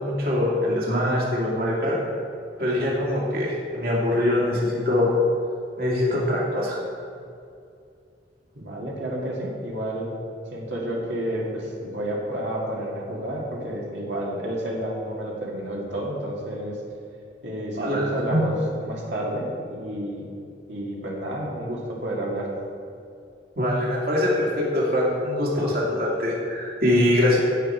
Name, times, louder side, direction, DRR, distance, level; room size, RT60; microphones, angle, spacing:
voice 1, 0.0-2.0 2.6-5.1 5.8-6.8 17.8-18.4 23.6-27.4, left 1 dB, 55° right, -4 dB, 2.4 m, -23 dB
voice 2, 8.5-10.1 10.5-16.8 17.4-20.3 20.7-22.5, right 1 dB, 75° right, -3 dB, 2.2 m, -30 dB
16.5 x 5.9 x 4.5 m, 2.5 s
head